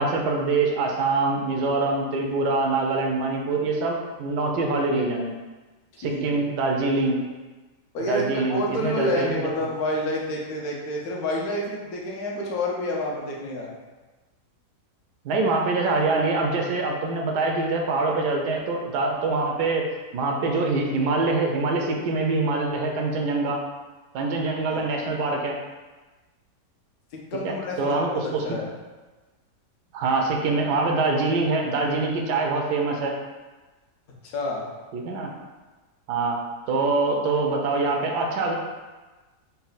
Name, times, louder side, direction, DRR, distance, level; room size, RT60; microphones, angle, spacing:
voice 1, 0.0-5.4 6.0-7.2 8.1-9.4 15.2-19.9 20.1-23.6 24.1-25.6 27.4-28.4 29.9-33.1 34.9-35.3 36.1-36.4 36.7-38.5, right 3 dB, 80° right, 1 dB, 1.2 m, -24 dB
voice 2, 5.9-6.4 7.9-13.7 24.7-24.8 27.1-28.2 28.4-28.7 34.2-34.6, left 1 dB, 70° left, -2 dB, 1.2 m, -28 dB
4.1 x 2.2 x 3.9 m, 1.2 s
omnidirectional pair, 1.7 m